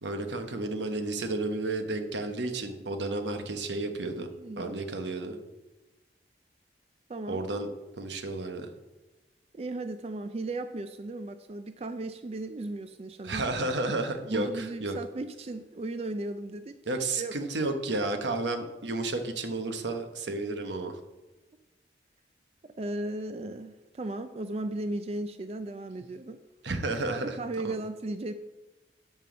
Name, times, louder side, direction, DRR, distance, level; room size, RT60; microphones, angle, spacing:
voice 1, 0.0-4.3 4.6-5.4 7.3-7.7 8.0-8.7 13.2-15.0 16.9-21.0 26.6-27.4 27.6-27.7, right 2 dB, 85° right, 6 dB, 1.0 m, -32 dB
voice 2, 4.2-4.8 7.1-7.5 9.5-13.5 14.3-16.8 17.2-17.4 20.3-20.4 22.6-26.4 27.1-28.3, right 2 dB, 35° right, 9 dB, 0.4 m, -36 dB
9.1 x 4.6 x 7.0 m, 1.1 s
head